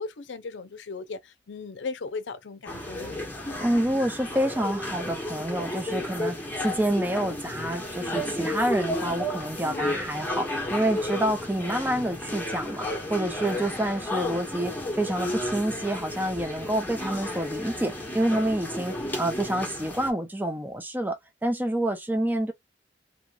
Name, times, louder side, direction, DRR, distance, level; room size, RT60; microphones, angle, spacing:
voice 1, 0.0-3.2 9.6-9.9, left 4 dB, 90° left, 0.5 m, -37 dB
sound 1, 2.7-20.1, left 1 dB, 10° left, 1.1 m, -33 dB
voice 2, 3.6-21.2 21.4-22.5, right 1 dB, 10° right, 0.7 m, -28 dB
2.9 x 2.9 x 2.4 m
head